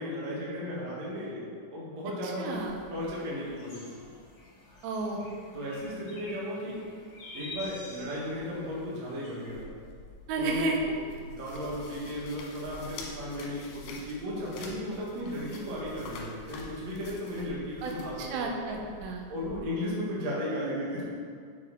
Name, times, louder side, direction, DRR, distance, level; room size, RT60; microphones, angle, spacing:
voice 1, 0.0-1.4 1.7-2.6 2.9-3.9 5.5-6.8 7.3-9.7 10.4-10.8 11.2-18.5 19.3-21.0, left 1 dB, 60° right, -6 dB, 1.8 m, -35 dB
voice 2, 2.2-2.8 4.8-5.3 10.3-10.8 17.8-17.9 18.2-19.3, right 3 dB, 85° right, 1 dB, 3.2 m, -32 dB
sound 1, 2.5-9.6, left 2 dB, 60° left, 2.1 m, -48 dB
sound 2, 9.5-19.6, left 1 dB, 75° left, 2.8 m, -46 dB
7.4 x 5.9 x 4.0 m, 2.2 s
omnidirectional pair, 5.6 m